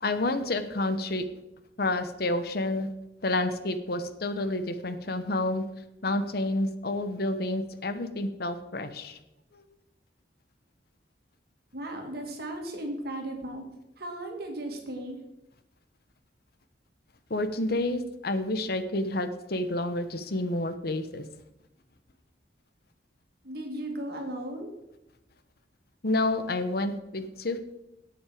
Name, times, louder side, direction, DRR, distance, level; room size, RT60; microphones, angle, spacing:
voice 1, 0.0-1.2 1.8-2.9 3.2-5.6 6.0-9.2 9.5-9.6 17.3-21.2 26.0-27.6, left 2 dB, 55° left, 10 dB, 0.9 m, -29 dB
voice 2, 11.7-13.6 14.0-15.2 23.4-24.7, right 1 dB, 55° right, 2 dB, 2.4 m, -36 dB
17.5 x 6.2 x 4.9 m, 0.89 s
head